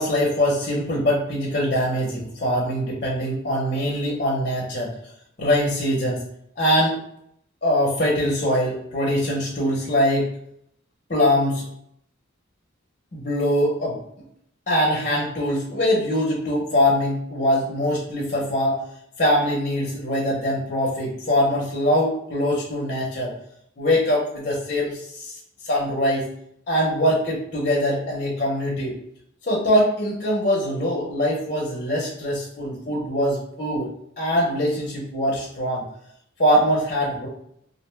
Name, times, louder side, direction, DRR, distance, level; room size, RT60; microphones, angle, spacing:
voice 1, 0.0-4.9 5.4-6.2 6.6-7.0 7.6-10.3 11.1-11.6 13.1-14.0 14.7-18.8 19.2-23.3 23.8-25.3 25.6-26.2 26.7-28.9 29.5-33.9 34.2-35.9 36.4-37.3, equal, 40° left, -4 dB, 0.7 m, -22 dB
2.5 x 2.2 x 3.2 m, 0.72 s
head